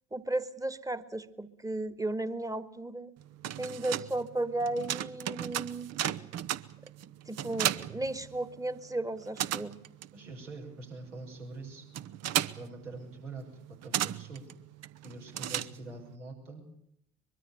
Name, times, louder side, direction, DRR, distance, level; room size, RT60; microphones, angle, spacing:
voice 1, 0.1-3.1 3.6-5.9 7.3-9.8, right 2 dB, 10° right, 14 dB, 1.8 m, -34 dB
sound 1, 3.2-8.8 9.0-16.1, right 11 dB, 45° right, 1.1 m, -36 dB
voice 2, 10.1-11.9 12.5-14.5 15.0-16.6, right 2 dB, 80° right, 1 dB, 6.2 m, -45 dB
23.5 x 23.0 x 6.8 m, 0.74 s
figure-of-eight pair, 55°, 36 cm